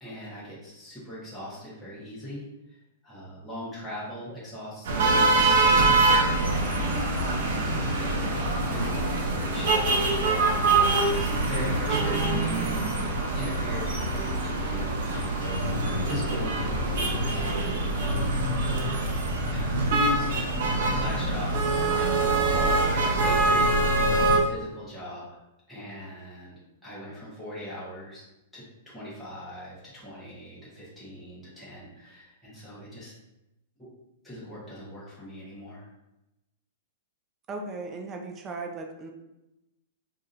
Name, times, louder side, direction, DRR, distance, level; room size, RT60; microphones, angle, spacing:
voice 1, 0.0-2.8 3.0-7.4 7.6-8.1 8.7-10.0 10.2-10.5 10.9-15.5 16.0-17.8 18.6-19.1 19.5-22.0 22.4-25.4 25.7-28.2 28.5-33.1 34.2-35.9, equal, 5° left, -9 dB, 1.1 m, -40 dB
sound 1, 4.9-24.4, right 2 dB, 60° right, 0.8 m, -24 dB
voice 2, 37.5-39.1, right 3 dB, 20° right, 3 dB, 0.4 m, -37 dB
4.7 x 2.6 x 2.5 m, 0.93 s
supercardioid pair, 160°, 0 cm